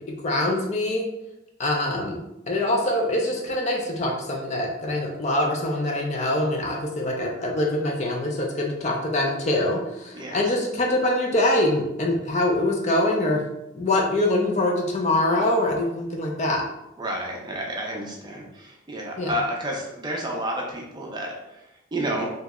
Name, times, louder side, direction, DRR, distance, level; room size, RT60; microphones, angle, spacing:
voice 1, 0.2-1.1 1.6-13.4 13.7-16.6 19.2-19.3, left 1 dB, 35° left, 0 dB, 0.4 m, -24 dB
voice 2, 10.1-10.5 17.0-22.3, right 1 dB, 20° right, -1 dB, 0.4 m, -30 dB
2.8 x 2.0 x 3.5 m, 0.90 s
head